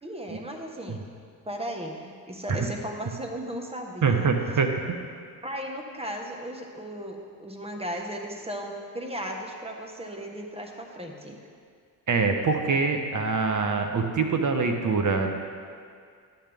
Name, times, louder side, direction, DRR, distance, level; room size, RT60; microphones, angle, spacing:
voice 1, 0.0-1.0 1.4-4.3 5.4-11.4, equal, 15° right, 2 dB, 1.3 m, -36 dB
voice 2, 4.0-4.7 12.1-15.3, right 4 dB, 45° right, 4 dB, 1.1 m, -24 dB
10.5 x 8.0 x 3.5 m, 2.2 s
supercardioid pair, 60°, 41 cm